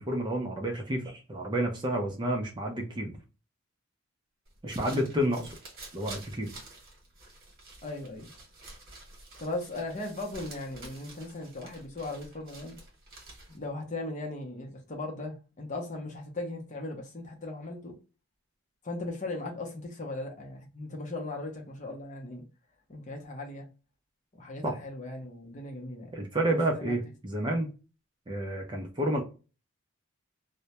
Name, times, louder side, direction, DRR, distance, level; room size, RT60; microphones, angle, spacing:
voice 1, 0.0-3.1 4.6-5.4 5.9-6.5 24.6-24.8 26.1-27.7 28.3-29.2, right 1 dB, 20° right, 0.4 m, -30 dB
sound 1, 4.5-13.7, right 2 dB, 45° right, 1.0 m, -49 dB
voice 2, 7.8-8.3 9.4-12.8 13.5-17.9 18.8-22.4 22.9-23.7 24.3-26.9, left 2 dB, 35° left, 0.6 m, -38 dB
2.2 x 2.1 x 2.8 m
head